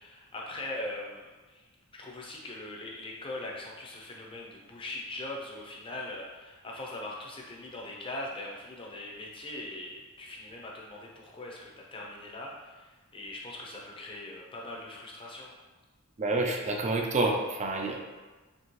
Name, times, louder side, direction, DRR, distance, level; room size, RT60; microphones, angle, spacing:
voice 1, 0.0-1.6 1.9-15.5, left 1 dB, 25° left, -2 dB, 0.6 m, -41 dB
voice 2, 16.2-18.0, right 2 dB, 35° right, 2 dB, 0.5 m, -28 dB
4.5 x 3.0 x 2.9 m, 1.3 s
head